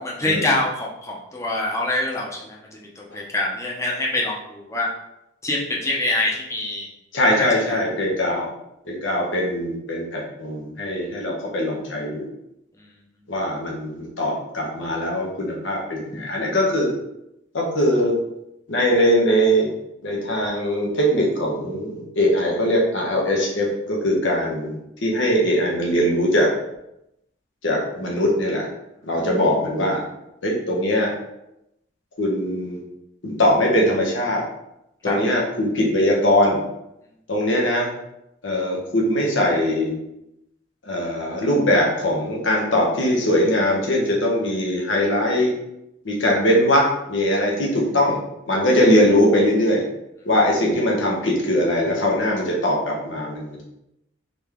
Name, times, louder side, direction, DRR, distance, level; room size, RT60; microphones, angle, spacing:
voice 1, 0.2-4.9 5.4-6.9 7.7-7.8 35.0-35.2 47.3-47.5, left 2 dB, 15° left, -3 dB, 0.7 m, -25 dB
voice 2, 7.1-8.5 8.9-12.3 13.3-16.9 17.5-18.2 18.7-19.7 20.0-24.7 25.0-26.5 27.6-28.7 29.0-30.0 30.4-31.1 32.2-32.8 33.2-34.4 35.0-36.6 37.3-37.9 38.4-39.9 40.8-45.5 46.0-48.2 48.5-49.8 50.2-53.6, equal, 75° left, -2 dB, 1.1 m, -21 dB
3.9 x 3.4 x 3.6 m, 0.85 s
head